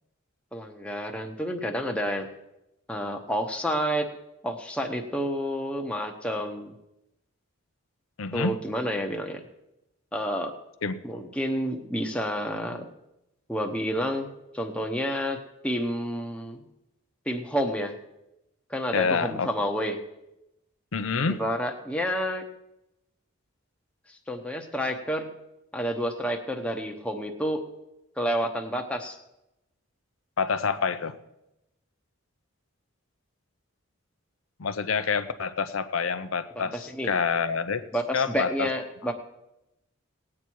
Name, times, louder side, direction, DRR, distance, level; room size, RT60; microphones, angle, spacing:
voice 1, 0.5-2.3 2.9-4.1 4.4-6.7 8.3-9.4 10.1-10.5 11.0-12.9 13.5-15.4 15.6-16.6 17.3-17.9 18.7-20.0 21.3-22.4 24.3-25.3 25.7-27.6 28.2-29.2 36.6-37.1 37.9-39.1, equal, 5° left, 3 dB, 0.9 m, -29 dB
voice 2, 8.2-8.6 10.8-11.0 18.9-19.5 20.9-21.4 30.4-31.1 34.6-37.8 38.1-38.7, left 5 dB, 80° left, 10 dB, 0.7 m, -27 dB
18.5 x 8.7 x 4.6 m, 0.91 s
head